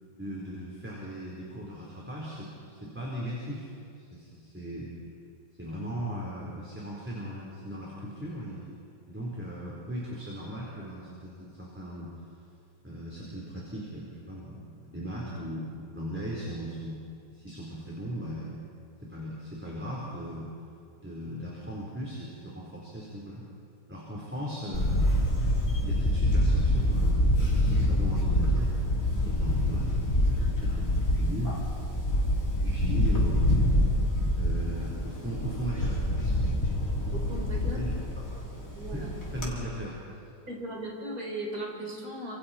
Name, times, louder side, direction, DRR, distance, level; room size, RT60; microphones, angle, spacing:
voice 1, 0.1-3.7 3.9-4.9 5.6-8.7 9.1-12.1 12.8-17.0 17.3-18.6 19.0-20.5 21.0-23.4 23.9-25.0 25.3-25.5 25.8-32.0 32.6-33.4 34.3-36.5 37.8-38.2 38.9-40.0, equal, 5° right, -6 dB, 4.1 m, -38 dB
Camera, 24.7-39.5, left 1 dB, 50° left, 3.9 m, -26 dB
voice 2, 37.1-37.8 38.5-39.1 40.5-42.4, right 1 dB, 55° right, -2 dB, 5.2 m, -38 dB
29.5 x 26.5 x 4.4 m, 2.5 s
omnidirectional pair, 1.9 m